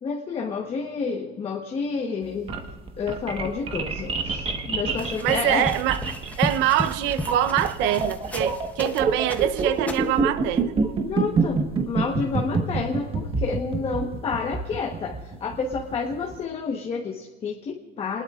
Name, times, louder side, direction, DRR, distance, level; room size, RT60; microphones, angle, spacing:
voice 1, 0.0-2.6 3.0-5.7 11.1-18.2, left 5 dB, 25° left, 1.2 m, -29 dB
sound 1, 2.2-16.4, right 4 dB, 25° right, 1.4 m, -27 dB
sound 2, 5.0-9.0 9.3-10.2, left 2 dB, 5° left, 0.8 m, -34 dB
voice 2, 5.2-6.0 6.4-10.8, right 12 dB, 65° right, 0.8 m, -24 dB
28.5 x 20.0 x 2.5 m
cardioid pair, 165°, 21 cm